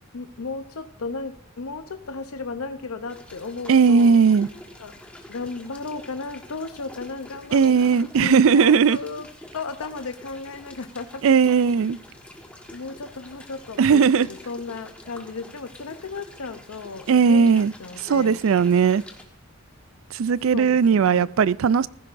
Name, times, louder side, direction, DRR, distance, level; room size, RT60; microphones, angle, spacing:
voice 1, 0.1-4.2 4.8-5.0 5.3-9.3 9.5-11.3 12.7-18.4 20.5-21.3, left 4 dB, 75° left, 0.7 m, -35 dB
sound 1, 3.1-19.2, left 1 dB, 5° left, 1.3 m, -47 dB
voice 2, 3.7-4.5 7.5-9.0 11.2-12.0 13.8-14.3 17.1-17.7 18.0-19.0 20.1-21.9, right 6 dB, 65° right, 0.4 m, -17 dB
15.5 x 15.0 x 2.6 m
head